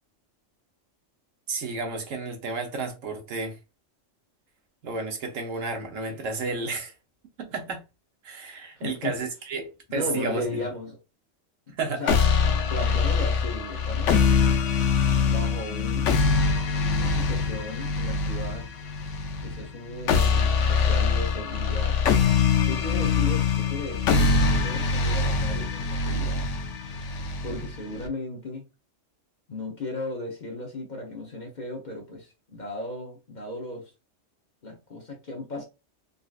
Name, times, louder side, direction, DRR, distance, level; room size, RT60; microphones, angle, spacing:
voice 1, 1.5-3.6 4.8-6.9 7.4-7.8 8.2-10.7 11.8-12.0, right 3 dB, 80° right, 1.2 m, -32 dB
voice 2, 8.8-9.2 9.9-11.0 11.7-12.2 12.7-14.2 15.3-16.2 16.9-18.7 19.4-22.0 22.6-26.5 27.4-28.7 29.5-33.9 34.6-35.6, left 2 dB, 45° left, 0.7 m, -36 dB
sound 1, 12.1-28.1, left 5 dB, 75° left, 1.0 m, -24 dB
3.8 x 2.4 x 2.4 m
omnidirectional pair, 1.3 m